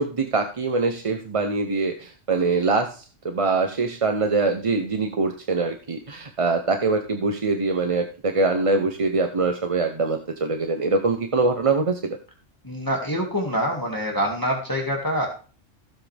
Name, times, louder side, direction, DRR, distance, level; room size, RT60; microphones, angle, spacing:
voice 1, 0.0-12.2, right 3 dB, 30° right, 6 dB, 0.7 m, -23 dB
voice 2, 12.6-15.3, equal, 15° left, 0 dB, 2.0 m, -25 dB
15.5 x 7.5 x 3.4 m, 0.38 s
omnidirectional pair, 1.3 m